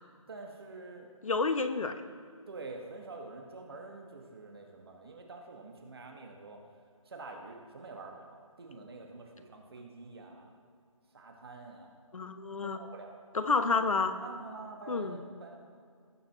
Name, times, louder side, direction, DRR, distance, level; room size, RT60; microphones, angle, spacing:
voice 1, 0.3-1.1 2.5-6.6 7.1-10.6 11.1-12.0 12.7-13.2 14.2-15.7, right 3 dB, 45° right, 2 dB, 1.8 m, -47 dB
voice 2, 1.2-1.9 12.1-12.8 13.3-14.2 14.9-15.2, left 4 dB, 70° left, 8 dB, 1.1 m, -29 dB
19.0 x 7.3 x 3.1 m, 2.2 s
figure-of-eight pair, 165°, 18 cm